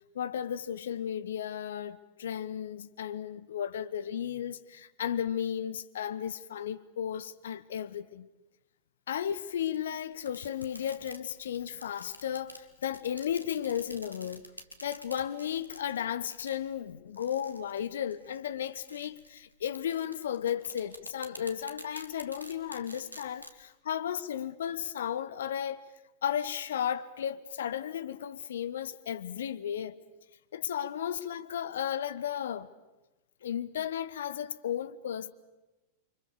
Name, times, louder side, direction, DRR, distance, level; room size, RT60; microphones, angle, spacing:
voice 1, 0.1-8.3 9.1-14.4 14.8-25.8 26.2-30.0 30.5-32.7 33.4-35.3, left 9 dB, 60° left, 1.1 m, -34 dB
sound 1, 9.2-23.6, equal, 90° right, 1.9 m, -49 dB
29.5 x 24.5 x 6.9 m
figure-of-eight pair, 90°, 0 cm